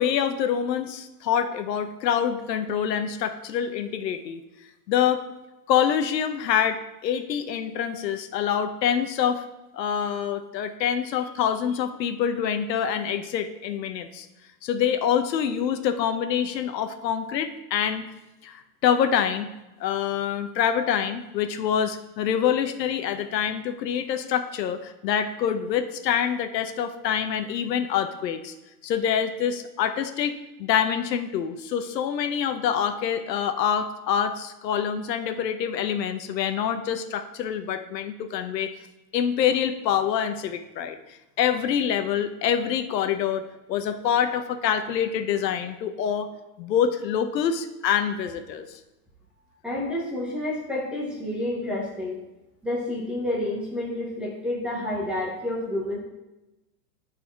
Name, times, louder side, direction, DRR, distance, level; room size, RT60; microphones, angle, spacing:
voice 1, 0.0-4.4 4.9-5.2 5.7-9.4 9.7-14.3 14.6-18.1 18.4-18.5 18.8-19.5 19.8-28.5 28.8-30.3 30.6-38.7 39.1-41.0 41.4-46.3 46.6-48.7, left 8 dB, 80° left, 8 dB, 0.9 m, -26 dB
voice 2, 49.6-52.2 52.6-56.0, left 1 dB, ahead, -5 dB, 0.8 m, -29 dB
9.6 x 4.2 x 4.5 m, 1.0 s
supercardioid pair, 165°, 49 cm